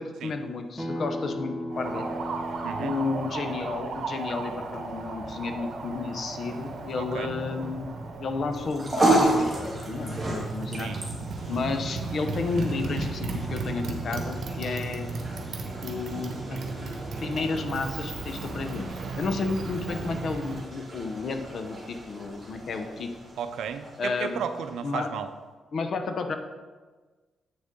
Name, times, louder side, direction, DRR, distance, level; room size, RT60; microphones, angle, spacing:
voice 1, 0.0-2.1 2.8-7.9 8.2-10.9 11.5-15.2 15.8-16.6 17.2-18.9 19.2-23.2 24.0-24.4 24.8-25.1 25.7-26.4, left 4 dB, 55° left, 7 dB, 0.7 m, -32 dB
Acoustic guitar, 0.8-6.0, left 1 dB, 15° left, 1.3 m, -38 dB
Motorcycle, 1.7-20.7, right 3 dB, 60° right, 1.1 m, -35 dB
voice 2, 2.6-3.0 7.0-7.3 10.8-11.0 23.4-25.3, right 7 dB, 85° right, 10 dB, 0.5 m, -34 dB
sound 1, 8.5-25.0, right 1 dB, 15° right, 2.0 m, -33 dB
7.9 x 6.5 x 3.7 m, 1.3 s
cardioid pair, 100°, 0 cm